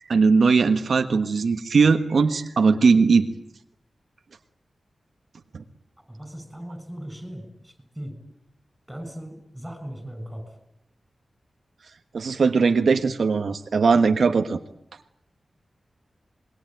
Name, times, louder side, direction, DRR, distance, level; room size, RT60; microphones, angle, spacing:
voice 1, 0.1-3.3 5.5-5.6 12.1-14.6, right 4 dB, 70° right, 7 dB, 1.3 m, -19 dB
voice 2, 6.1-8.1 8.9-10.4, equal, 5° right, 8 dB, 7.1 m, -38 dB
26.5 x 22.0 x 9.2 m, 0.77 s
wide cardioid pair, 130°, 0 cm